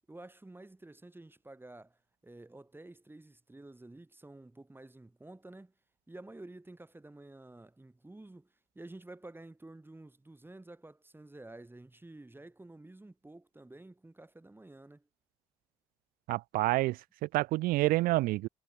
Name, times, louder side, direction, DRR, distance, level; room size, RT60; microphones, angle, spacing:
voice 1, 0.1-5.7 6.1-15.1, right 2 dB, 10° right, 4.7 m, -51 dB
voice 2, 16.3-18.5, right 19 dB, 55° right, 0.6 m, -28 dB
figure-of-eight pair, 50°, 18 cm